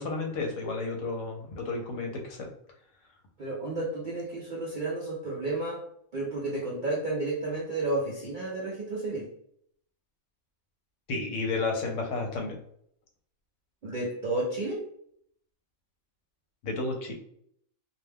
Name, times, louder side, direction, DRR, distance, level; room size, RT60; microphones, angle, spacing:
voice 1, 0.0-2.5 11.1-12.6 16.6-17.1, left 3 dB, 70° left, 2 dB, 0.9 m, -32 dB
voice 2, 3.4-5.8 6.1-9.3 13.8-14.8, right 2 dB, 60° right, -3 dB, 0.5 m, -32 dB
2.5 x 2.1 x 3.3 m, 0.67 s
omnidirectional pair, 1.4 m